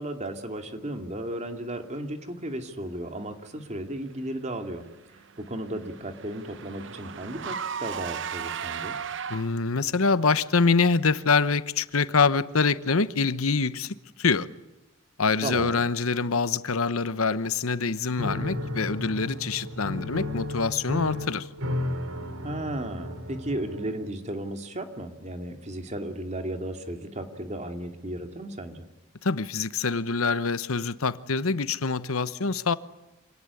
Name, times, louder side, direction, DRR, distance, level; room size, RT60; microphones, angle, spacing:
voice 1, 0.0-4.8 5.4-9.0 15.4-15.9 22.4-28.8, right 1 dB, 35° right, 2.6 m, -34 dB
Car / Engine, 4.7-9.8, right 7 dB, 60° right, 0.9 m, -36 dB
voice 2, 9.3-14.5 15.2-21.5 29.2-32.7, left 4 dB, 90° left, 1.0 m, -25 dB
Piano, 18.2-24.1, left 1 dB, 90° right, 2.9 m, -33 dB
27.0 x 18.5 x 9.7 m
head